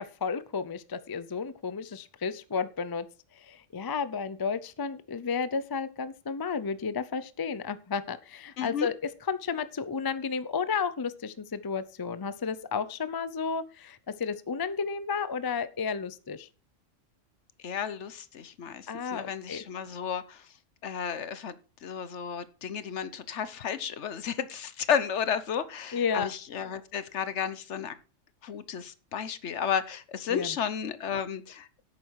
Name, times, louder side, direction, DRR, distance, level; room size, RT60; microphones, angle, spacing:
voice 1, 0.0-3.1 3.4-8.9 9.3-16.5 18.9-19.6 25.9-26.3 30.3-30.6, left 5 dB, 30° left, 14 dB, 0.4 m, -32 dB
voice 2, 8.6-8.9 17.6-20.4 20.8-21.6 21.8-28.0 28.4-31.8, left 7 dB, 65° left, 14 dB, 1.2 m, -33 dB
10.5 x 8.6 x 4.7 m, 0.35 s
omnidirectional pair, 1.3 m